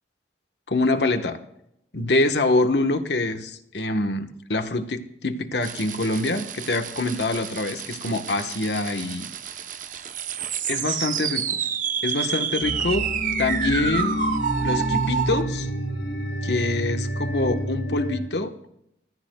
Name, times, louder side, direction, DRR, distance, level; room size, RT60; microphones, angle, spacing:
voice 1, 0.7-1.4 1.9-9.3 10.7-11.6 12.0-13.1 13.4-14.2 14.6-15.7 16.4-18.5, left 2 dB, 70° left, 7 dB, 1.3 m, -25 dB
sound 1, 5.6-15.4, right 7 dB, 45° right, 0.9 m, -29 dB
sound 2, 12.6-18.2, equal, 90° left, 7.9 m, -28 dB
25.0 x 17.0 x 2.3 m, 0.77 s
head